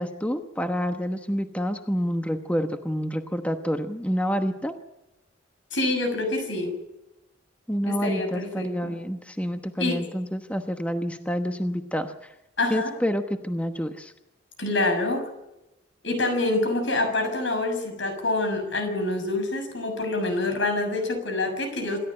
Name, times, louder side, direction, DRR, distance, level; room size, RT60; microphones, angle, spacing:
voice 1, 0.0-4.7 7.7-12.3 12.7-14.1, equal, 5° left, 6 dB, 1.1 m, -28 dB
voice 2, 5.7-6.7 7.8-8.9 9.8-10.0 12.6-12.9 14.6-15.2 16.0-22.0, left 2 dB, 75° left, 6 dB, 6.7 m, -26 dB
27.5 x 13.5 x 8.8 m, 0.93 s
head